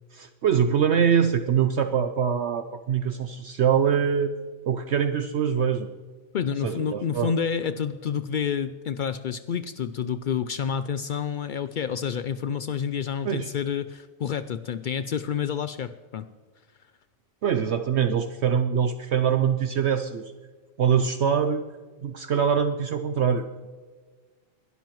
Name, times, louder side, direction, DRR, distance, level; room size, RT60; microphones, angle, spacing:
voice 1, 0.1-4.3 4.7-5.9 6.6-7.3 13.2-13.5 17.4-20.3 20.8-21.6 22.0-23.4, right 7 dB, 60° right, 9 dB, 0.8 m, -23 dB
voice 2, 6.3-16.3, left 7 dB, 90° left, 11 dB, 0.4 m, -29 dB
21.0 x 12.5 x 3.1 m, 1.4 s
omnidirectional pair, 1.4 m